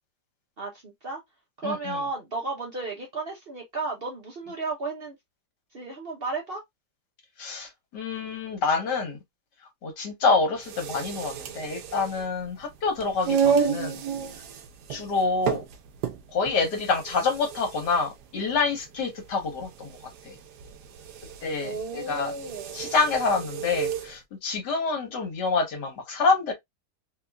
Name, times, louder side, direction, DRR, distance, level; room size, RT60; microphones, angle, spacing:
voice 1, 0.6-1.2 1.6-5.2 5.7-6.6 21.6-22.8, right 3 dB, 45° right, 0.8 m, -33 dB
voice 2, 1.6-2.0 7.4-9.2 9.8-14.0 14.9-15.6 16.3-19.9 20.2-20.4 21.4-22.3 22.7-26.5, left 4 dB, 75° left, 1.7 m, -27 dB
sound 1, 10.6-24.1, right 7 dB, 75° right, 1.2 m, -32 dB
3.8 x 3.0 x 2.2 m
omnidirectional pair, 1.9 m